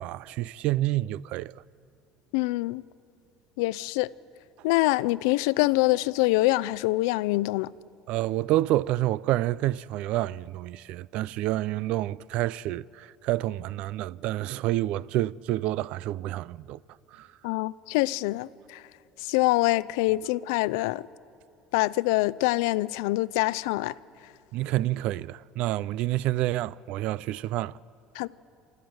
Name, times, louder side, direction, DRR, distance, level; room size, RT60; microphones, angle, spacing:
voice 1, 0.0-1.5 8.1-16.8 17.1-17.3 24.5-27.8, right 15 dB, 65° right, 0.4 m, -28 dB
voice 2, 2.3-2.8 3.6-4.1 4.6-7.7 17.4-18.8 19.2-21.1 21.7-23.9 28.2-28.3, left 20 dB, 90° left, 0.4 m, -25 dB
29.0 x 13.5 x 7.9 m
cardioid pair, 125°, 2 cm